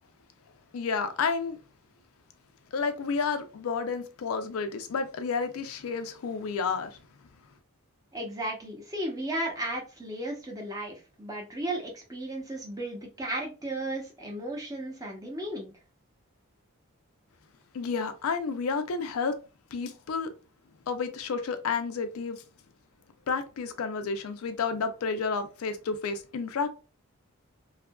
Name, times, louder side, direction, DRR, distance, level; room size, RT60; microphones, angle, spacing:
voice 1, 0.7-1.6 2.7-7.0 17.7-19.3 19.7-20.3 20.9-22.4 23.3-26.7, left 5 dB, 85° left, 0.4 m, -31 dB
voice 2, 8.1-15.7, right 1 dB, 15° right, 0.7 m, -35 dB
2.6 x 2.4 x 2.2 m
head